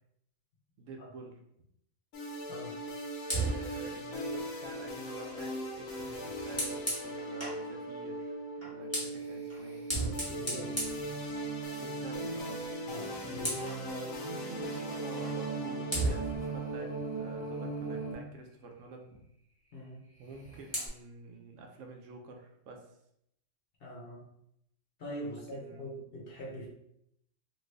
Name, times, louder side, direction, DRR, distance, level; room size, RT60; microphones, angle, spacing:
voice 1, 0.8-1.4 3.3-9.8 11.8-12.6 13.5-19.2 20.2-22.9 25.3-25.9, right 3 dB, 75° right, 3 dB, 0.9 m, -48 dB
sound 1, 2.1-18.1, right 1 dB, 85° left, 1.1 m, -38 dB
voice 2, 2.5-2.8 10.0-10.9 12.9-13.6 19.7-20.1 23.8-24.3 25.0-26.7, equal, 50° left, -3 dB, 0.9 m, -43 dB
Fire, 3.2-7.7 8.5-11.8 12.2-12.4 12.8-13.8 15.2-15.4 15.9-18.2 20.1-20.9, right 1 dB, 10° left, 1.1 m, -38 dB
2.9 x 2.6 x 3.2 m, 0.75 s
omnidirectional pair, 1.4 m